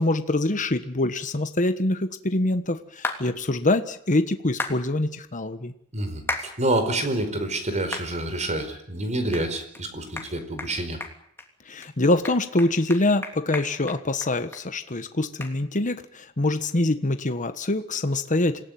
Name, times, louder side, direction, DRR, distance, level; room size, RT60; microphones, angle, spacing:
voice 1, 0.0-5.7 11.7-18.6, left 2 dB, 35° left, 9 dB, 1.4 m, -24 dB
sound 1, 3.0-3.2 4.6-4.8 6.3-6.5 7.0-7.1 7.9-8.1 8.6-8.7 9.3-9.4 9.7-9.8 10.2-10.3 10.6-10.7 11.0-11.5 11.8-11.9 12.2-14.6 14.9-15.0 15.4-15.5, left 2 dB, 10° left, 3.1 m, -32 dB
voice 2, 5.9-11.0, right 1 dB, 35° right, 8 dB, 4.7 m, -27 dB
27.5 x 17.5 x 9.4 m, 0.70 s
head